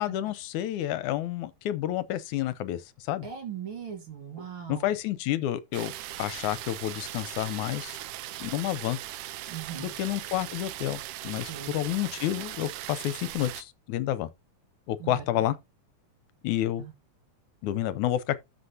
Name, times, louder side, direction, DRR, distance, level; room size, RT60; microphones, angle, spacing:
voice 1, 0.0-3.3 4.7-5.9 6.2-8.0 8.4-9.0 9.8-14.3 14.9-15.6 16.4-16.8 17.6-18.4, left 13 dB, 80° left, 2.0 m, -30 dB
voice 2, 3.2-4.9 9.5-9.9 11.5-11.8 15.0-15.5 16.8-16.9, right 8 dB, 50° right, 1.9 m, -39 dB
sound 1, 5.7-13.6, right 14 dB, 85° right, 2.3 m, -39 dB
13.5 x 5.9 x 2.7 m
omnidirectional pair, 3.6 m